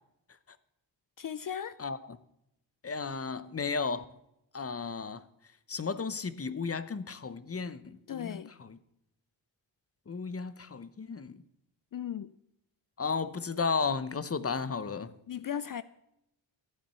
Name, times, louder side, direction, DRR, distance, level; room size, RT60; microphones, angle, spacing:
voice 1, 1.2-1.8 8.1-8.5 11.9-12.3 15.3-15.8, left 9 dB, 50° left, 0.5 m, -36 dB
voice 2, 2.8-4.0 4.5-5.2 5.7-8.4 10.1-11.4 13.0-15.1, left 5 dB, 30° left, 0.8 m, -34 dB
13.5 x 8.7 x 6.8 m
cardioid pair, 75°, 45 cm